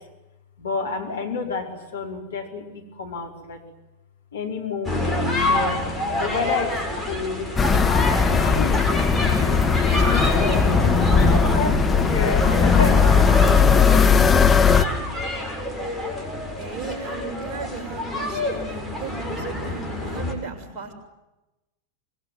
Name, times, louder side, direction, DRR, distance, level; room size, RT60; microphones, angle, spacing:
voice 1, 0.6-3.6 4.3-5.8 6.2-6.8 7.1-7.5 7.8-10.9 11.3-13.1 18.2-18.8 19.6-20.0, left 4 dB, 65° left, 2 dB, 5.1 m, -30 dB
sound 1, 4.8-20.3, left 1 dB, 5° right, 7.3 m, -27 dB
sound 2, 7.6-14.8, left 6 dB, 15° left, 1.7 m, -18 dB
voice 2, 16.6-20.9, right 5 dB, 35° right, 2 dB, 7.1 m, -36 dB
25.0 x 22.0 x 9.5 m, 1.0 s
figure-of-eight pair, 90°, 0 cm